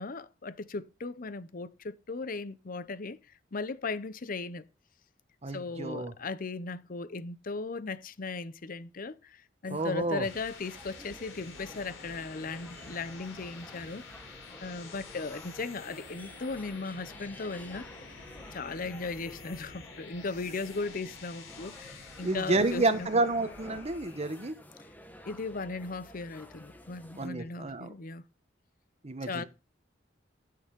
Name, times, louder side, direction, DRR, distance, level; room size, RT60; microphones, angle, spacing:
voice 1, 0.0-3.2 3.5-4.7 5.5-14.0 14.6-17.9 18.5-23.1 25.3-28.3 29.2-29.4, left 3 dB, 50° left, 0.7 m, -37 dB
voice 2, 5.4-6.1 9.7-10.3 22.2-24.5 27.2-27.9 29.0-29.4, right 2 dB, 35° right, 1.2 m, -30 dB
sound 1, 9.6-27.3, left 1 dB, 10° left, 1.3 m, -52 dB
sound 2, 9.9-24.5, left 4 dB, 80° left, 3.5 m, -49 dB
12.5 x 6.8 x 5.2 m
head